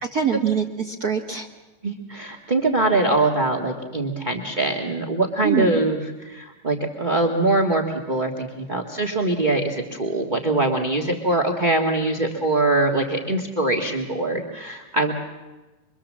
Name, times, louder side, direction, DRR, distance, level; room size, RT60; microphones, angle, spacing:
voice 1, 0.0-1.5 5.4-5.8, right 7 dB, 60° right, 2 dB, 0.9 m, -24 dB
voice 2, 1.8-15.1, right 2 dB, 35° right, 3 dB, 0.7 m, -23 dB
25.5 x 23.5 x 7.4 m, 1.1 s
omnidirectional pair, 3.9 m